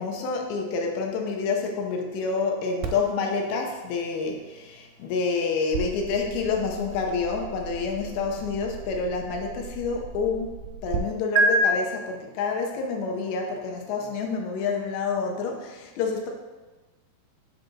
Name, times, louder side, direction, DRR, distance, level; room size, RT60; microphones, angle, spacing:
voice 1, 0.0-10.6 10.8-16.3, left 4 dB, 85° left, 2 dB, 3.2 m, -28 dB
sound 1, 2.8-11.0 11.4-11.5, right 3 dB, 75° right, 2.6 m, -33 dB
8.0 x 7.5 x 2.9 m, 1.2 s
omnidirectional pair, 5.0 m